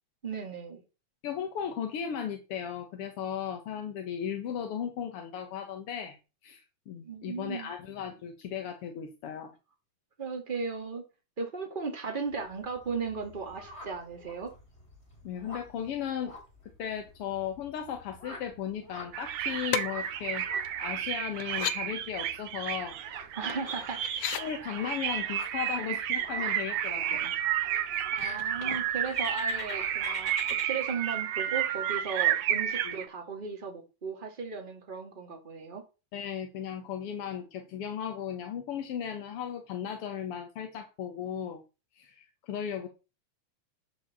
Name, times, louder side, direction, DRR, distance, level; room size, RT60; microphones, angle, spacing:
voice 1, 0.2-0.8 7.0-7.7 10.2-11.0 11.4-14.5 23.3-24.0 28.1-30.3 30.6-35.8, right 5 dB, 20° right, 4 dB, 1.6 m, -36 dB
voice 2, 1.2-6.2 6.4-9.5 15.2-16.3 16.8-23.0 24.3-27.3 32.8-33.0 36.1-41.6 42.0-42.9, left 8 dB, 60° left, 5 dB, 1.8 m, -36 dB
sound 1, 12.3-30.6, left 2 dB, 20° left, 3.1 m, -46 dB
sound 2, 19.1-33.1, right 10 dB, 70° right, 1.9 m, -31 dB
sound 3, 19.7-19.8 20.6-20.7 21.4-21.8 23.5-24.4 26.2-26.3 26.7-27.1 28.2-29.1 29.5-29.6, left 10 dB, 75° left, 1.4 m, -35 dB
10.5 x 4.8 x 7.3 m, 0.31 s
omnidirectional pair, 3.6 m